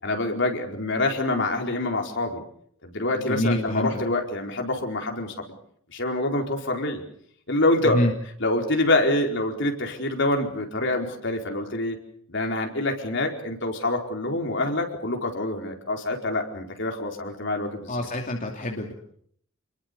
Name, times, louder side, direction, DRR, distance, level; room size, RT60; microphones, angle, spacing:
voice 1, 0.0-2.4 2.8-5.3 5.9-7.0 7.5-8.0 8.4-12.0 12.3-18.1, left 2 dB, 60° left, 3 dB, 4.7 m, -26 dB
voice 2, 3.1-4.0 7.8-8.1 17.9-18.9, left 1 dB, 40° left, 1 dB, 2.8 m, -26 dB
28.5 x 22.0 x 6.9 m, 0.64 s
head